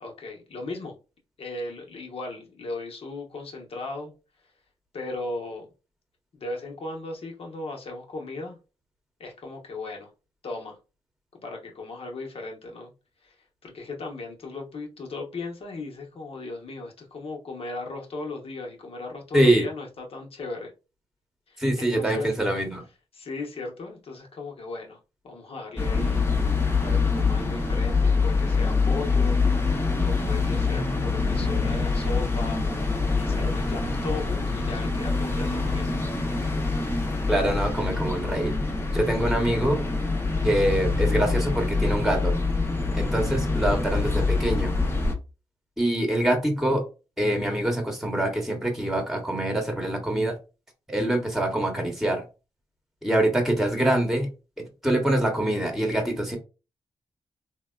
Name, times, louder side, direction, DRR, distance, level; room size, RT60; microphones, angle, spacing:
voice 1, 0.0-1.0 1.4-4.1 4.9-5.7 6.3-8.6 9.2-10.1 10.4-10.8 11.3-12.9 13.2-13.3 13.6-20.7 21.5-22.3 23.1-26.3 26.8-29.4 30.0-32.6 33.1-36.0, left 3 dB, 60° left, 1 dB, 0.9 m, -37 dB
voice 2, 19.3-19.7 21.6-22.8 37.3-38.5 38.9-39.8 40.4-42.4 42.9-44.7 45.8-46.8 47.2-50.4 50.9-52.2 53.0-54.3 54.6-56.4, right 1 dB, 5° right, 3 dB, 1.1 m, -24 dB
sound 1, 25.8-45.1, left 4 dB, 20° left, 0.8 m, -25 dB
3.3 x 2.2 x 2.3 m, 0.30 s
cardioid pair, 60°, 11 cm